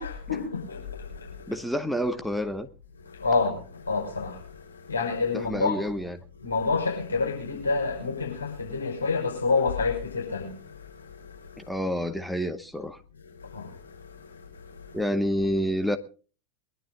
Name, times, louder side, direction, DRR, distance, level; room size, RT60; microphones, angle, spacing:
voice 1, 0.0-1.6 2.9-6.0 6.3-11.7 13.1-15.1, left 4 dB, 75° left, 5.6 m, -29 dB
voice 2, 1.5-2.7 5.5-6.2 11.6-13.0 14.9-16.0, equal, ahead, 1.1 m, -28 dB
22.5 x 11.5 x 3.9 m
figure-of-eight pair, 90°, 0 cm